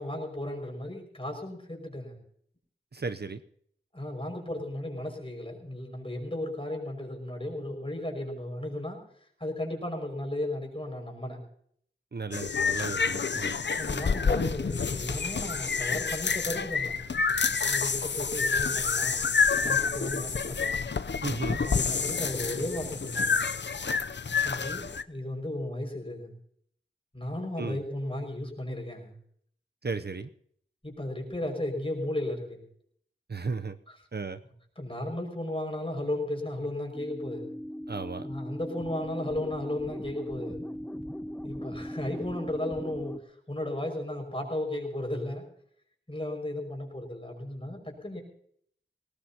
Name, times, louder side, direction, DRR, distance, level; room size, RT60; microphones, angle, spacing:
voice 1, 0.0-2.2 3.9-9.0 9.4-11.4 13.8-17.0 17.7-19.4 19.6-20.8 21.6-23.4 24.4-26.3 27.1-29.2 30.8-32.6 34.8-37.5 38.2-40.6 41.4-43.1 43.5-45.4 46.1-48.2, left 1 dB, 25° left, 2 dB, 5.7 m, -35 dB
voice 2, 2.9-3.4 12.1-13.6 21.2-21.6 27.6-27.8 29.8-30.3 33.3-33.8 34.1-34.4 37.9-38.3, right 4 dB, 55° right, 10 dB, 0.7 m, -35 dB
sound 1, 12.3-25.0, left 5 dB, 60° left, 0.6 m, -28 dB
sound 2, 36.9-43.2, equal, 10° left, 0.8 m, -39 dB
20.5 x 18.5 x 2.9 m, 0.64 s
wide cardioid pair, 45°, 20 cm